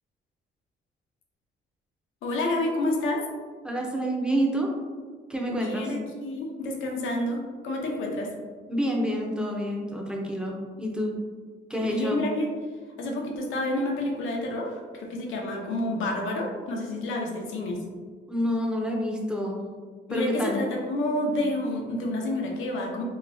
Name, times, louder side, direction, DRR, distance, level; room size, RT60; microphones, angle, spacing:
voice 1, 2.2-3.2 5.5-8.3 11.8-12.5 13.0-17.8 20.1-23.0, left 1 dB, 80° left, 0 dB, 0.7 m, -29 dB
voice 2, 3.6-4.8 5.3-5.9 8.7-11.1 11.7-12.2 18.3-19.6 20.1-20.6, equal, 5° right, -1 dB, 0.6 m, -28 dB
3.0 x 2.9 x 2.6 m, 1.5 s
cardioid pair, 90°, 20 cm